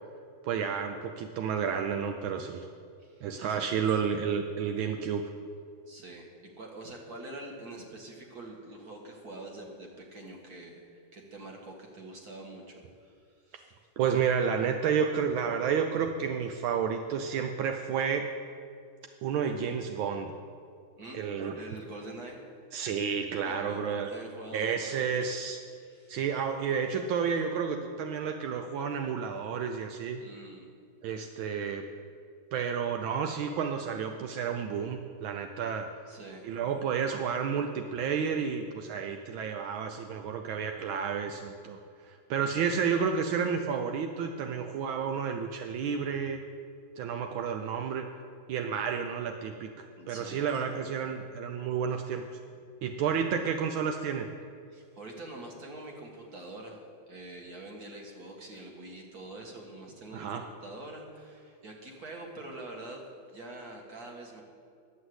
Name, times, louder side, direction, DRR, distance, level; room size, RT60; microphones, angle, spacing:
voice 1, 0.4-2.6 3.2-5.2 14.0-18.3 19.2-20.3 21.1-21.6 22.7-24.1 24.5-25.6 26.1-30.2 31.0-31.8 32.5-35.9 36.4-46.4 47.0-48.1 48.5-52.2 52.8-54.3 60.1-60.4, right 7 dB, 80° right, 5 dB, 1.5 m, -31 dB
voice 2, 3.0-3.6 5.9-6.3 6.6-13.2 13.5-13.7 21.0-22.4 23.3-25.3 25.8-26.2 30.2-30.7 36.1-36.5 50.0-50.5 54.7-56.8 57.1-64.4, right 2 dB, 50° right, 1 dB, 2.1 m, -45 dB
11.5 x 7.5 x 7.9 m, 2.3 s
omnidirectional pair, 2.2 m